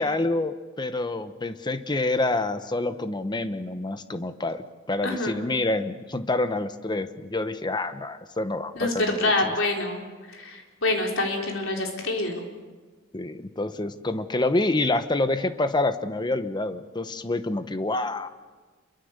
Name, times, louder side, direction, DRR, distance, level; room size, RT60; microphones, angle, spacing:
voice 1, 0.0-9.5 13.1-18.3, left 2 dB, 20° left, 11 dB, 0.9 m, -27 dB
voice 2, 5.0-5.4 8.8-12.4, left 2 dB, 75° left, 1 dB, 3.9 m, -26 dB
27.5 x 23.0 x 6.7 m, 1.4 s
head